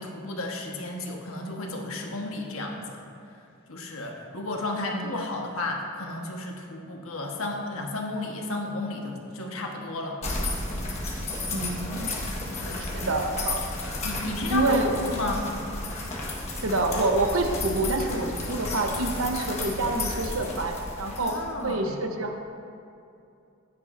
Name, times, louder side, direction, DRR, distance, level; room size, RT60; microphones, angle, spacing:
voice 1, 0.0-3.0 3.7-10.2 12.6-12.8 14.0-14.8 15.0-15.4 21.2-22.0, left 2 dB, 75° left, 0 dB, 1.4 m, -33 dB
sound 1, 10.2-21.7, left 2 dB, 30° left, 1.5 m, -33 dB
voice 2, 11.5-12.1 12.8-13.6 14.5-15.0 16.6-21.3 21.6-22.4, right 2 dB, 75° right, 3 dB, 1.0 m, -27 dB
14.5 x 9.4 x 2.7 m, 2.6 s
head